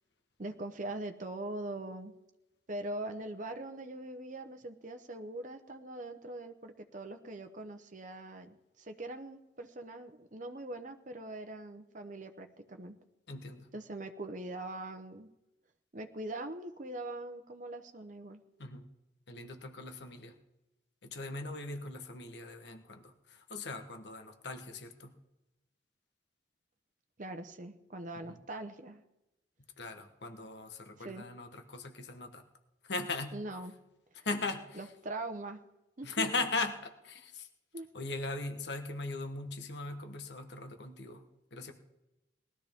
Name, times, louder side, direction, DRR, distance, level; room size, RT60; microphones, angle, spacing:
voice 1, 0.4-2.1 2.7-13.0 13.7-15.3 15.9-18.4 27.2-29.0 31.0-31.2 33.3-33.7 34.8-35.6 36.0-36.3 37.7-37.9, right 2 dB, 40° right, 6 dB, 0.9 m, -42 dB
voice 2, 13.3-13.7 18.6-18.9 19.3-20.4 21.0-25.2 28.3-28.4 29.8-32.4 32.8-33.3 34.1-34.9 36.0-37.5 37.9-41.2 41.5-41.7, left 3 dB, 65° left, 6 dB, 1.3 m, -39 dB
19.5 x 13.0 x 3.6 m, 0.94 s
head